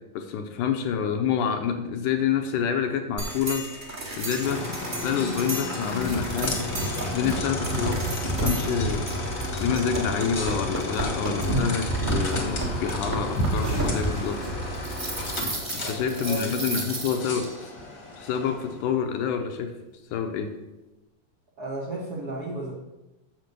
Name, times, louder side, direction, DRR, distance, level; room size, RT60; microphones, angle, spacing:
voice 1, 0.2-4.7 5.0-6.6 7.1-14.4 15.4-17.7 18.2-19.7 20.1-20.5, left 7 dB, 75° left, 6 dB, 2.0 m, -28 dB
sound 1, 3.2-17.4, right 2 dB, 30° right, 0.9 m, -31 dB
sound 2, 4.4-18.8, left 2 dB, 50° left, 1.3 m, -33 dB
voice 2, 15.8-17.0 21.6-22.8, right 2 dB, 75° right, -4 dB, 0.8 m, -34 dB
7.0 x 5.9 x 6.6 m, 1.0 s
omnidirectional pair, 4.0 m